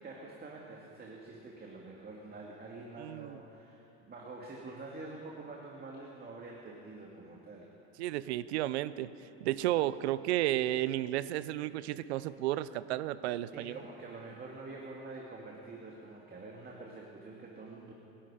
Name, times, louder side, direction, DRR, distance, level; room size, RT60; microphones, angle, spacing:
voice 1, 0.0-7.7 13.5-17.9, right 3 dB, 30° right, -2 dB, 2.4 m, -47 dB
voice 2, 3.0-3.4 8.0-9.1 9.4-13.8, right 14 dB, 85° right, 16 dB, 0.6 m, -32 dB
24.5 x 11.5 x 5.0 m, 3.0 s
supercardioid pair, 90°, 32 cm